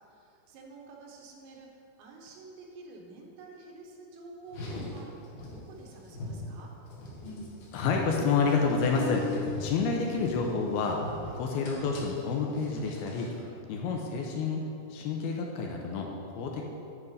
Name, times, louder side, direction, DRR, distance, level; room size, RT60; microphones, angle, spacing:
voice 1, 0.1-1.7 2.0-5.1 5.5-6.7 11.3-11.4, right 3 dB, 90° right, -1 dB, 3.5 m, -49 dB
Car, 4.4-13.4, left 2 dB, 55° left, 2.2 m, -40 dB
voice 2, 7.7-9.3 9.6-11.0 11.3-13.3 13.7-14.6 14.9-16.6, left 5 dB, 80° left, 1 dB, 2.4 m, -29 dB
9.5 x 5.7 x 5.2 m, 2.7 s
omnidirectional pair, 5.0 m